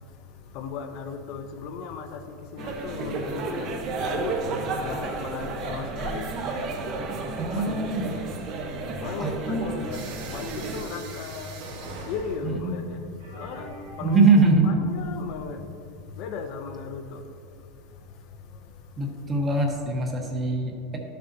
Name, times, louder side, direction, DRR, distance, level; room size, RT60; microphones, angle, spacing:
voice 1, 0.5-17.3 18.5-18.7 19.4-19.5, left 5 dB, 50° left, 0.5 m, -37 dB
sound 1, 2.6-10.8, right 3 dB, 40° right, 0.8 m, -32 dB
voice 2, 7.4-8.1 9.2-9.7 12.4-12.7 14.0-14.7 19.0-21.0, right 3 dB, 20° right, 1.0 m, -22 dB
sound 2, 9.9-15.4, right 2 dB, 75° right, 1.4 m, -43 dB
11.5 x 6.8 x 2.7 m
supercardioid pair, 160°, 0 cm